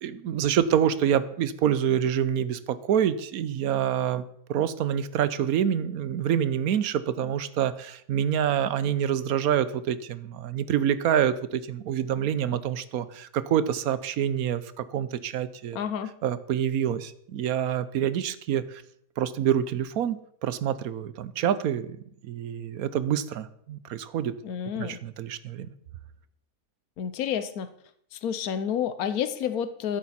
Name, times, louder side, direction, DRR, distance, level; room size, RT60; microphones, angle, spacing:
voice 1, 0.0-4.2 4.5-15.8 16.2-18.8 19.2-22.0 22.2-24.3 24.8-25.7, right 9 dB, 80° right, 14 dB, 1.2 m, -26 dB
voice 2, 15.7-16.1 24.4-25.0 27.0-27.7 28.1-30.0, left 8 dB, 80° left, 11 dB, 1.3 m, -30 dB
13.0 x 10.5 x 4.2 m, 0.70 s
omnidirectional pair, 1.5 m